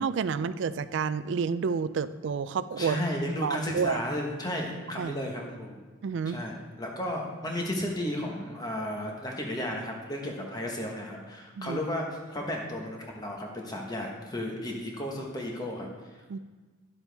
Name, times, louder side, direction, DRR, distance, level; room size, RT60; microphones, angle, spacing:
voice 1, 0.0-3.0 3.4-4.0 5.0-5.2 6.0-6.4 11.6-11.8 16.3-16.4, right 6 dB, 65° right, 14 dB, 0.3 m, -29 dB
voice 2, 2.8-5.8 6.3-15.9, left 1 dB, 20° left, 0 dB, 1.1 m, -33 dB
11.0 x 7.0 x 3.4 m, 1.3 s
head